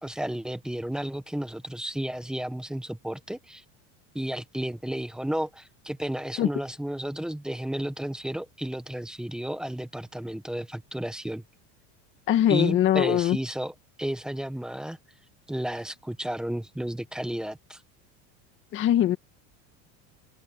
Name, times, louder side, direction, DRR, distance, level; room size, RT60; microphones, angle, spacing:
voice 1, 0.0-3.6 4.1-11.4 12.5-13.7 14.0-15.0 15.5-17.8, right 1 dB, ahead, 1.3 m, -32 dB
voice 2, 12.3-13.4 18.7-19.2, left 12 dB, 30° left, 1.8 m, -22 dB
open air
cardioid pair, 170°, 39 cm